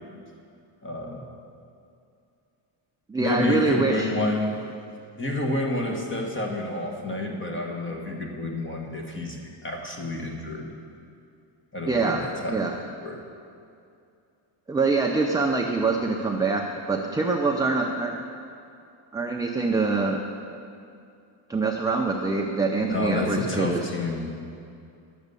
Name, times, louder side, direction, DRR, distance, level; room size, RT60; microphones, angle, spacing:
voice 1, 0.8-1.2 3.2-4.5 5.2-10.7 11.7-12.5 13.0-13.2 22.8-24.3, left 2 dB, 25° left, 1 dB, 1.5 m, -29 dB
voice 2, 3.1-4.1 11.9-12.8 14.7-18.2 19.1-20.2 21.5-24.0, right 3 dB, 10° right, 0 dB, 0.5 m, -25 dB
11.0 x 7.2 x 6.8 m, 2.5 s
cardioid pair, 135°, 50 cm